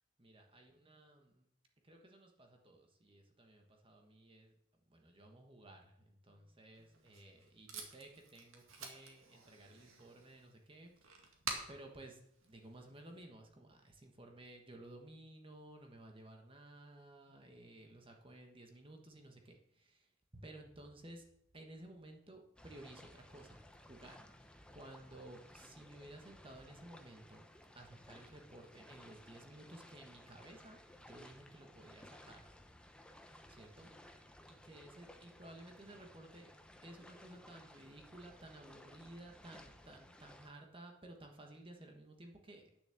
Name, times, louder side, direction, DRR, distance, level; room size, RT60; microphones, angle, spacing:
voice 1, 0.2-1.4 1.8-4.5 4.9-11.3 11.7-20.1 20.3-21.3 21.5-24.2 24.7-27.5 27.7-32.5 33.5-33.9 34.5-36.5 36.8-42.7, right 1 dB, 25° right, 3 dB, 1.4 m, -56 dB
Packing tape duct tape, 6.7-13.2, right 4 dB, 80° right, 2.1 m, -50 dB
sound 1, 22.6-40.5, left 1 dB, 5° left, 0.8 m, -59 dB
9.5 x 7.2 x 7.1 m, 0.78 s
head